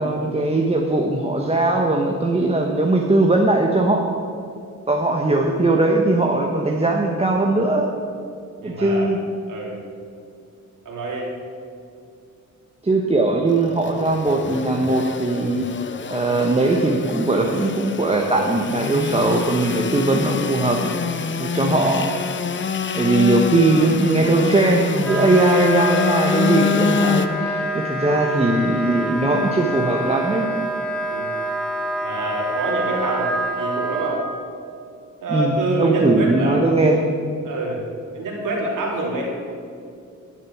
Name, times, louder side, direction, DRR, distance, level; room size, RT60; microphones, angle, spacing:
voice 1, 0.0-4.2 4.9-7.9 8.6-9.2 12.8-15.6 16.1-22.2 23.0-30.5 35.3-37.0, right 2 dB, 20° right, 0 dB, 1.0 m, -20 dB
voice 2, 8.6-9.2 9.5-9.8 10.8-11.3 22.9-23.2 31.1-31.3 32.0-33.3 33.6-34.2 35.2-36.6 37.4-37.8 38.1-39.2, right 1 dB, 85° right, -2 dB, 3.1 m, -26 dB
Engine / Sawing, 13.5-27.3, left 6 dB, 40° left, 0.7 m, -26 dB
Wind instrument woodwind instrument, 25.0-34.3, right 1 dB, ahead, 1.7 m, -26 dB
12.0 x 7.5 x 7.2 m, 2.4 s
cardioid pair, 100°, 31 cm